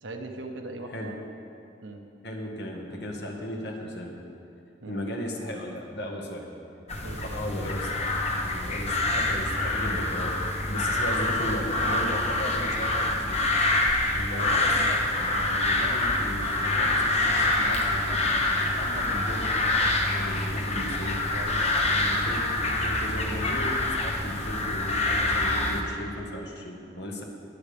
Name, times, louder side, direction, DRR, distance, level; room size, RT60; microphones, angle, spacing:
voice 1, 0.0-1.1 1.8-2.0 4.8-5.0 7.0-7.4 14.3-14.9 21.3-22.3, right 2 dB, 85° right, 3 dB, 1.1 m, -40 dB
voice 2, 2.2-4.1 4.9-6.5 7.3-8.1 8.5-10.4 10.7-13.4 14.1-19.5 20.0-21.3 22.0-27.2, equal, 60° left, 0 dB, 1.6 m, -36 dB
sound 1, 6.9-25.8, left 2 dB, 35° left, 1.0 m, -26 dB
21.0 x 8.0 x 3.5 m, 2.7 s
head